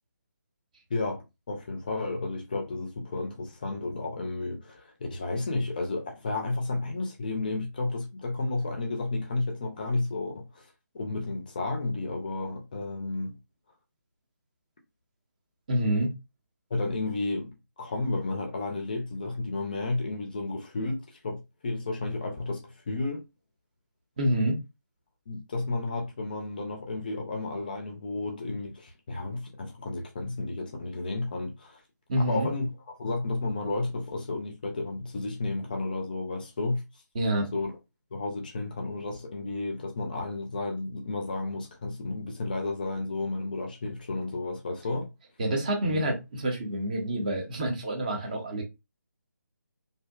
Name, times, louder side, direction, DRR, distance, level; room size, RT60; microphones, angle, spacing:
voice 1, 0.9-10.7 10.9-13.3 16.7-17.5 17.8-23.2 25.3-31.8 32.2-32.7 33.0-36.8 37.5-37.7 38.1-45.1 45.8-46.0, left 2 dB, 30° left, 0.5 m, -32 dB
voice 2, 15.7-16.1 24.2-24.6 32.1-32.5 37.1-37.5 45.4-48.6, right 1 dB, 25° right, 0.6 m, -27 dB
2.6 x 2.0 x 2.3 m
figure-of-eight pair, 150°, 10 cm